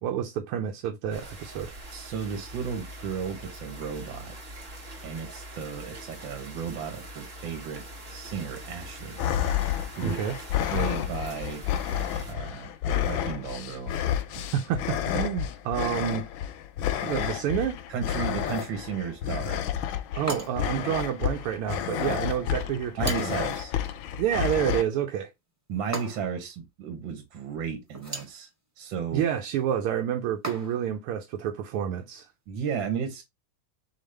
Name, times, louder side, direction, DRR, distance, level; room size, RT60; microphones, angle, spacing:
voice 1, 0.0-1.7 10.0-10.4 14.5-16.3 17.0-17.8 20.1-23.5 24.2-25.3 29.1-32.3, right 9 dB, 90° right, 1.6 m, -29 dB
sound 1, 1.1-12.3, right 1 dB, 35° right, 1.0 m, -43 dB
voice 2, 1.9-4.3 5.0-7.8 8.1-9.2 9.9-10.3 10.7-11.6 12.2-13.9 17.3-17.4 17.9-19.6 23.0-23.7 25.7-28.5 28.8-29.2 32.5-33.2, right 7 dB, 65° right, 1.6 m, -34 dB
sound 2, 9.2-24.8, left 10 dB, 75° left, 1.2 m, -30 dB
sound 3, 18.4-18.8 20.3-20.8 23.0-23.5 25.9-26.5 27.9-28.4 30.4-31.0, right 2 dB, 10° right, 0.9 m, -37 dB
4.0 x 3.6 x 3.2 m
omnidirectional pair, 2.4 m